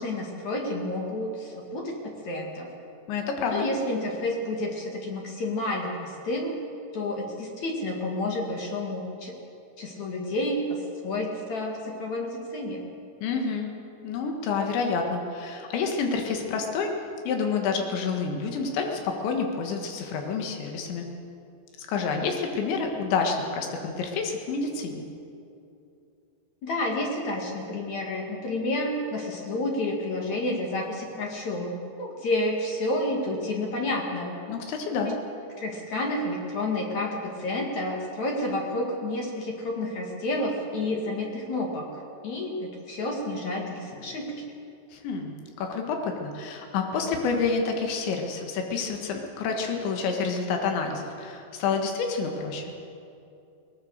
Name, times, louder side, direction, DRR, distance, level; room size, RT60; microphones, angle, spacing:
voice 1, 0.0-2.7 3.5-6.7 6.9-9.4 9.8-12.8 26.6-34.4 35.6-41.9 42.2-44.5, left 1 dB, 50° left, 0 dB, 2.9 m, -30 dB
voice 2, 3.1-3.7 13.2-13.7 14.0-16.9 17.3-21.1 21.8-25.0 34.5-35.2 44.9-52.7, left 5 dB, 90° left, 3 dB, 4.0 m, -28 dB
22.5 x 19.0 x 6.6 m, 2.7 s
omnidirectional pair, 5.0 m